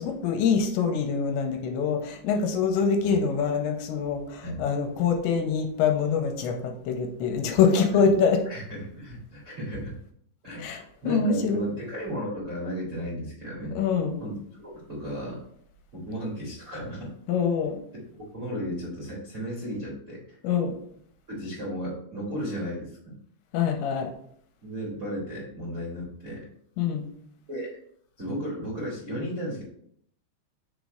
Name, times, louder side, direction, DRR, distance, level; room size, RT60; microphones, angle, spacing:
voice 1, 0.0-8.4 10.6-11.6 13.8-14.2 17.3-17.8 20.4-20.7 23.5-24.1 26.8-27.1, left 6 dB, 85° left, 4 dB, 2.9 m, -25 dB
voice 2, 8.5-10.0 10.4-10.7 11.0-13.8 14.2-14.4 14.6-15.4 15.9-17.1 18.3-20.4 21.3-23.2 24.6-26.5 27.5-27.7 28.2-29.6, equal, 55° right, -8 dB, 0.8 m, -34 dB
6.8 x 3.1 x 5.1 m, 0.68 s
omnidirectional pair, 5.3 m